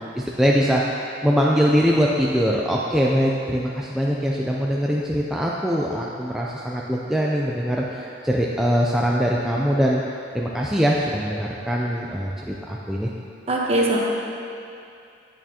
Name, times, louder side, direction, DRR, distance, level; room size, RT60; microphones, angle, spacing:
voice 1, 0.2-10.0 10.3-13.1, equal, ahead, -4 dB, 0.4 m, -22 dB
voice 2, 13.5-14.0, right 1 dB, 35° right, -2 dB, 1.0 m, -20 dB
9.1 x 8.6 x 2.9 m, 2.6 s
head